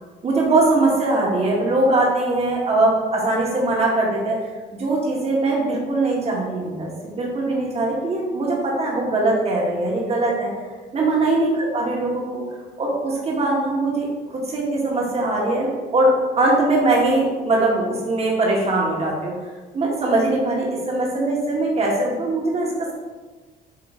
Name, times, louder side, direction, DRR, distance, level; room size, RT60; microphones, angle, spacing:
voice 1, 0.2-4.4 4.8-10.5 10.9-12.4 12.8-19.4 19.7-22.9, right 2 dB, 40° right, -2 dB, 1.8 m, -21 dB
7.7 x 3.2 x 3.9 m, 1.3 s
cardioid pair, 110°, 17 cm